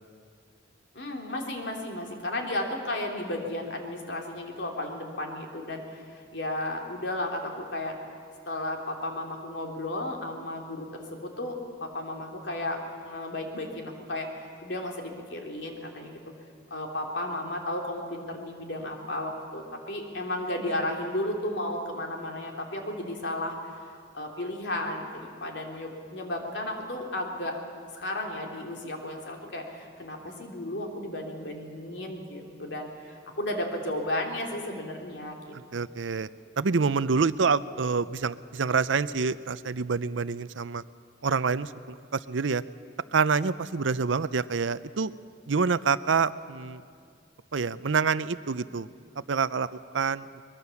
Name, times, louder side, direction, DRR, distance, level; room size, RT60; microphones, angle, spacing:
voice 1, 0.9-8.0 8.5-16.2 16.7-27.6 27.9-35.5, left 1 dB, 70° left, 1 dB, 3.2 m, -34 dB
voice 2, 35.5-36.3 36.6-40.8 41.2-42.6 43.1-45.1 45.5-46.8 47.5-48.9 49.3-49.7 49.9-50.2, right 5 dB, 85° right, 16 dB, 0.6 m, -27 dB
23.0 x 21.0 x 7.1 m, 2.2 s
head